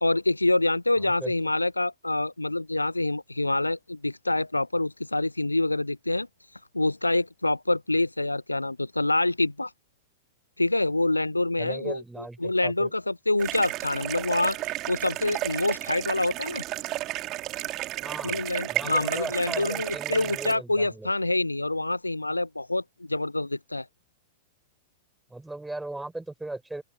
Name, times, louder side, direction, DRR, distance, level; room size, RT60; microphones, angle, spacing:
voice 1, 0.0-6.3 6.7-9.7 10.6-12.0 12.4-14.6 14.9-16.6 18.2-23.9, left 2 dB, 85° left, 0.7 m, -26 dB
voice 2, 1.0-1.3 11.6-12.9 18.0-18.4 18.7-21.1 25.3-26.8, right 2 dB, 5° right, 6.8 m, -38 dB
sound 1, 13.4-20.5, right 17 dB, 35° right, 2.4 m, -33 dB
open air
figure-of-eight pair, 90°, 0 cm